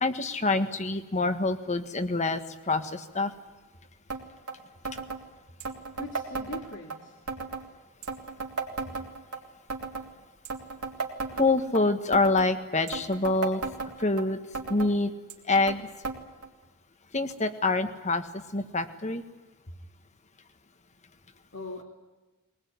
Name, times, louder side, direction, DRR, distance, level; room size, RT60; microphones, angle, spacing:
voice 1, 0.0-2.4 2.7-3.3 11.3-13.6 14.0-14.4 14.7-15.1 15.5-15.8 17.1-18.2 18.5-19.2, left 3 dB, 30° left, 9 dB, 1.6 m, -26 dB
sound 1, 4.1-4.2 4.5-4.6 4.8-5.2 5.6-7.0 7.3-7.6 8.0-9.4 9.7-10.1 10.4-11.8 12.1-12.5 12.9-14.2 14.5-14.9 15.3-15.8 16.0-16.2 16.4-16.5 17.3-17.4 18.2-18.3, right 4 dB, 90° right, 3.3 m, -34 dB
voice 2, 6.0-7.2 21.5-21.8, left 2 dB, 55° left, 1 dB, 2.5 m, -40 dB
22.5 x 20.0 x 9.7 m, 1.1 s
head